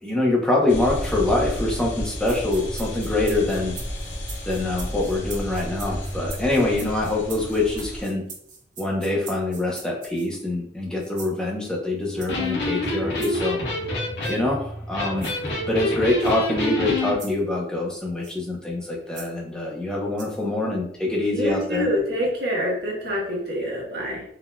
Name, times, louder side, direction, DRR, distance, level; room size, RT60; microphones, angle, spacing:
voice 1, 0.0-3.7 4.5-8.2 8.8-13.6 14.3-15.3 15.7-22.1, left 2 dB, 5° left, -3 dB, 0.6 m, -25 dB
sound 1, 0.7-8.0, equal, 85° left, 0.7 m, -32 dB
sound 2, 2.2-10.4 11.0-11.4 12.2-12.5 13.2-13.3 14.2-14.4 15.2-15.4 16.2-16.3 17.2-17.4 18.2-18.4 19.1-19.3 20.2-20.4, right 4 dB, 45° right, 0.7 m, -42 dB
Electric guitar, 12.1-17.2, left 2 dB, 70° left, 1.1 m, -27 dB
voice 2, 21.3-24.2, equal, 65° right, -4 dB, 1.3 m, -26 dB
3.9 x 2.6 x 2.2 m, 0.68 s
head